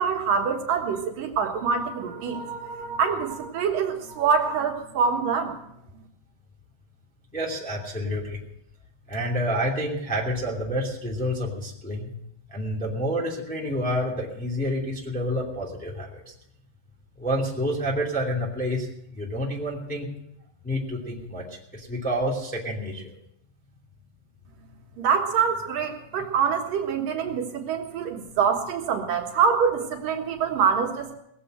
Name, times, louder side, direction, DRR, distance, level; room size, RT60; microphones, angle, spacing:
voice 1, 0.0-5.6 25.0-31.2, right 6 dB, 75° right, 2 dB, 3.2 m, -25 dB
voice 2, 7.3-8.4 9.1-12.1 12.5-16.3 17.2-18.9 19.2-20.1 20.6-23.1, equal, 5° left, -3 dB, 2.1 m, -28 dB
19.5 x 7.6 x 7.8 m, 0.77 s
omnidirectional pair, 4.0 m